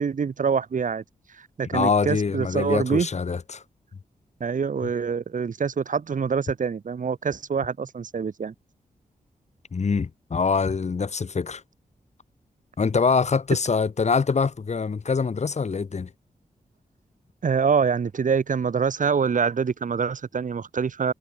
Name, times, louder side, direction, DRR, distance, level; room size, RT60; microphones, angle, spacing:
voice 1, 0.0-3.1 4.4-8.5 17.4-21.1, right 6 dB, 65° right, 3.5 m, -25 dB
voice 2, 1.7-3.6 9.7-11.6 12.8-16.1, left 5 dB, 50° left, 3.4 m, -24 dB
wide cardioid pair, 110°, 15 cm